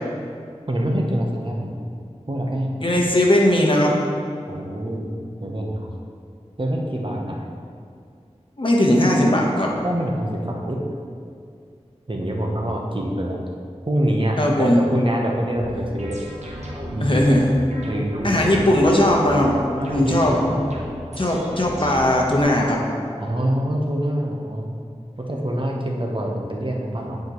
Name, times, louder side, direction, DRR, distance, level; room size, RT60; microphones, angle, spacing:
voice 1, 0.7-1.8 2.3-2.7 4.5-5.1 5.4-5.9 6.6-7.4 9.8-10.8 12.1-13.4 13.9-16.2 16.9-17.3 17.8-18.5 19.7-20.7 23.2-24.7 25.2-27.2, right 1 dB, 45° right, 0 dB, 1.0 m, -25 dB
voice 2, 2.8-3.9 8.6-9.7 14.4-14.8 17.0-17.6 18.2-19.5 19.9-20.4 21.2-22.8, left 1 dB, 45° left, -2 dB, 1.1 m, -18 dB
sound 1, 15.6-22.4, equal, 75° right, 1.2 m, -34 dB
9.6 x 5.1 x 3.1 m, 2.3 s
wide cardioid pair, 45°, 12 cm